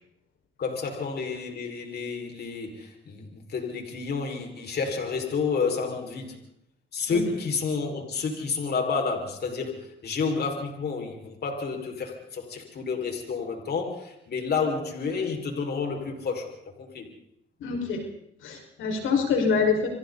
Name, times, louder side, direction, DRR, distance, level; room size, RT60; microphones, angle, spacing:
voice 1, 0.6-6.4 6.9-16.5 16.8-17.1, left 5 dB, 55° left, 3 dB, 5.5 m, -30 dB
voice 2, 17.6-18.0 18.4-19.9, left 5 dB, 80° left, 2 dB, 5.5 m, -25 dB
29.5 x 25.0 x 4.2 m, 0.74 s
cardioid pair, 90°, 20 cm